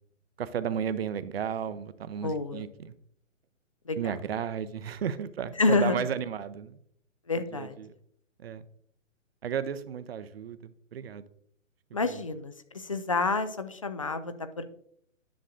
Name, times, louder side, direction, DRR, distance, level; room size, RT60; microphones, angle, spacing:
voice 1, 0.4-2.9 4.0-6.8 7.5-7.9 8.4-8.6 9.4-11.2 12.0-12.2, right 8 dB, 50° right, 13 dB, 0.7 m, -33 dB
voice 2, 2.2-2.7 3.9-4.1 5.6-6.0 7.3-7.8 11.9-14.6, left 3 dB, 30° left, 10 dB, 0.3 m, -29 dB
10.0 x 7.5 x 2.5 m, 0.68 s
figure-of-eight pair, 125°, 39 cm